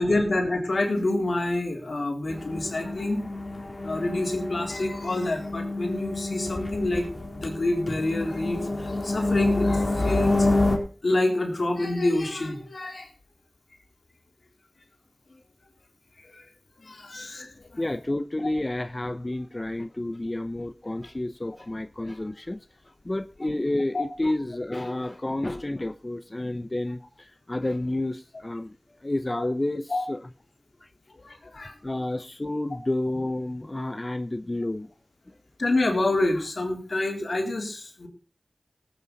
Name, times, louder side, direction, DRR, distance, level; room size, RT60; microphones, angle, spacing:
voice 1, 0.0-3.2 3.8-7.1 7.3-10.5 11.0-13.1 16.2-16.5 16.8-17.8 23.9-24.0 29.9-30.0 31.2-31.8 35.6-38.1, left 2 dB, 80° left, 2 dB, 3.8 m, -27 dB
sound 1, 2.3-10.8, left 2 dB, 55° left, 4.0 m, -28 dB
voice 2, 17.8-22.6 23.0-28.8 29.0-30.3 30.8-30.9 31.8-34.9, left 1 dB, 35° left, 10 dB, 0.8 m, -30 dB
19.0 x 9.4 x 4.1 m, 0.36 s
wide cardioid pair, 55°, 0 cm